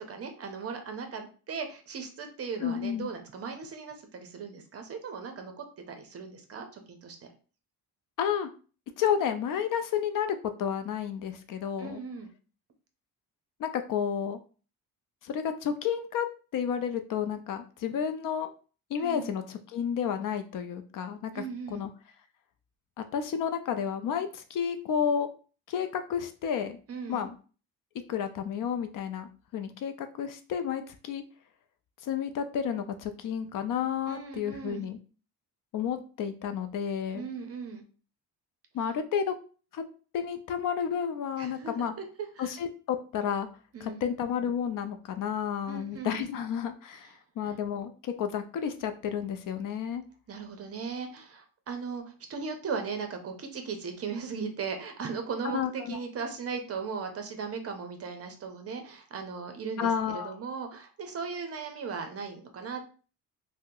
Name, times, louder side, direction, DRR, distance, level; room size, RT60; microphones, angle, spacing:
voice 1, 0.0-7.2 11.8-12.3 19.0-19.4 21.3-21.9 26.9-27.2 34.1-34.9 37.1-37.8 41.4-42.5 43.7-44.0 45.7-46.3 50.3-62.8, right 5 dB, 40° right, 5 dB, 0.6 m, -38 dB
voice 2, 2.6-3.1 8.2-8.5 9.0-10.3 10.6-12.0 13.6-14.4 15.2-16.3 16.5-18.5 18.9-21.9 23.1-25.3 25.7-26.8 27.1-27.4 28.1-31.2 32.0-35.0 35.7-37.3 38.7-39.3 39.7-39.8 40.1-41.9 42.4-43.5 43.8-50.0 55.5-56.0 59.8-60.3, left 8 dB, 55° left, 8 dB, 0.4 m, -31 dB
2.7 x 2.1 x 3.7 m, 0.37 s
cardioid pair, 130°, 39 cm